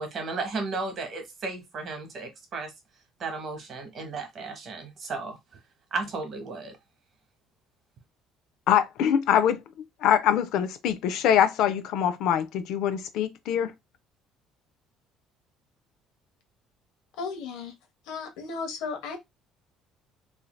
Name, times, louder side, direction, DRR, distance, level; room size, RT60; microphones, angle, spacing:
voice 1, 0.0-2.7 3.2-5.4 5.9-6.7, right 3 dB, 40° right, 0.9 m, -34 dB
voice 2, 8.7-9.6 10.0-13.7, left 9 dB, 65° left, 0.3 m, -23 dB
voice 3, 17.2-17.7 18.0-19.2, left 5 dB, 85° left, 0.8 m, -34 dB
3.1 x 2.6 x 2.2 m
cardioid pair, 160°, 0 cm